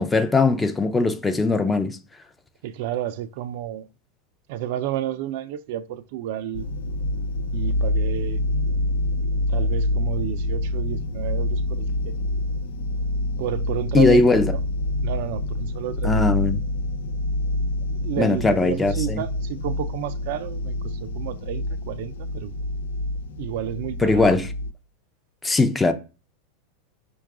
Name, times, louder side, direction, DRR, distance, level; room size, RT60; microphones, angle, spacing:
voice 1, 0.0-2.0 13.9-14.4 16.0-16.6 18.2-19.2 24.0-24.5 25.4-25.9, left 3 dB, 10° left, 0.4 m, -19 dB
voice 2, 2.6-3.9 4.5-6.7 7.5-8.4 9.5-12.1 13.4-14.6 15.0-16.2 17.9-22.5 23.4-24.3, right 12 dB, 65° right, 0.4 m, -31 dB
sound 1, 6.5-24.7, left 1 dB, 90° left, 0.4 m, -26 dB
4.6 x 2.3 x 4.7 m
supercardioid pair, 135°, 0 cm